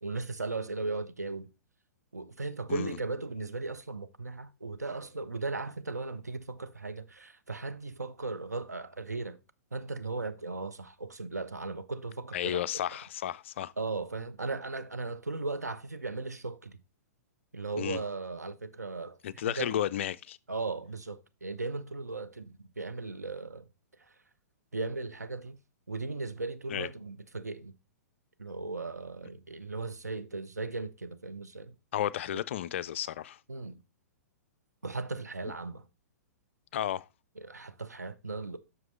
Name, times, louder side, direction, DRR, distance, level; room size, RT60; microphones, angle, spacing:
voice 1, 0.0-1.5 2.1-9.4 9.7-12.6 13.8-16.8 17.5-19.2 19.5-19.7 20.5-23.6 24.7-25.6 25.9-27.7 28.4-31.7 33.5-33.8 34.8-35.8 37.4-38.6, right 3 dB, 80° right, 0.7 m, -37 dB
voice 2, 12.3-13.7 17.8-18.0 19.2-20.4 26.7-26.9 31.9-33.4 36.7-37.1, left 11 dB, 45° left, 0.4 m, -33 dB
7.7 x 6.1 x 3.2 m
figure-of-eight pair, 110°, 9 cm